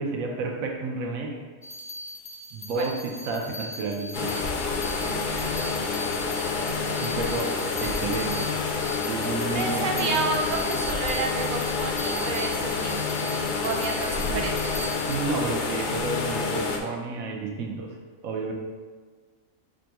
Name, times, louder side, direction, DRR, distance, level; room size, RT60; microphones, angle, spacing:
voice 1, 0.0-1.4 2.5-4.5 6.9-7.5 7.8-8.5 9.0-10.1 14.0-14.5 15.1-18.0 18.2-18.5, right 3 dB, 80° right, 0 dB, 1.1 m, -31 dB
sound 1, 1.6-15.2, left 1 dB, 20° left, 0.5 m, -39 dB
sound 2, 4.1-16.8, left 4 dB, 75° left, 0.4 m, -28 dB
voice 2, 9.5-13.0 13.6-14.7, right 3 dB, 65° right, 1 dB, 0.5 m, -30 dB
4.4 x 2.6 x 4.5 m, 1.5 s
omnidirectional pair, 1.4 m